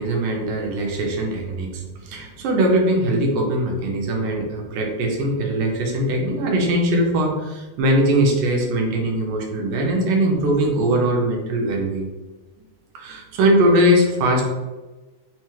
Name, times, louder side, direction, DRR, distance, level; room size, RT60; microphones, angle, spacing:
voice 1, 0.0-12.1 12.9-14.4, right 1 dB, 80° right, 0 dB, 2.1 m, -21 dB
5.6 x 2.0 x 3.0 m, 1.2 s
omnidirectional pair, 3.7 m